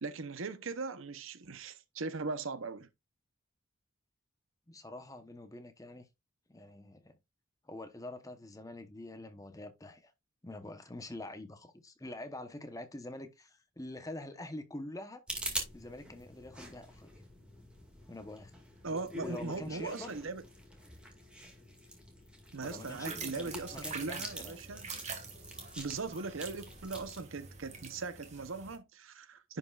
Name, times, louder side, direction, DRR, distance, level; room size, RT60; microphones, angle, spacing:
voice 1, 0.0-2.9 18.8-20.4 22.5-24.9 25.8-29.6, right 4 dB, 80° right, 0.9 m, -39 dB
voice 2, 4.7-6.1 6.5-7.1 7.6-10.1 10.4-15.2 15.7-17.1 18.1-18.5 19.2-20.1 22.6-24.6, left 1 dB, 15° left, 1.0 m, -45 dB
sound 1, 15.3-27.2, right 1 dB, 5° right, 2.0 m, -46 dB
sound 2, 22.6-28.8, right 5 dB, 35° right, 1.8 m, -46 dB
10.5 x 5.2 x 2.4 m
head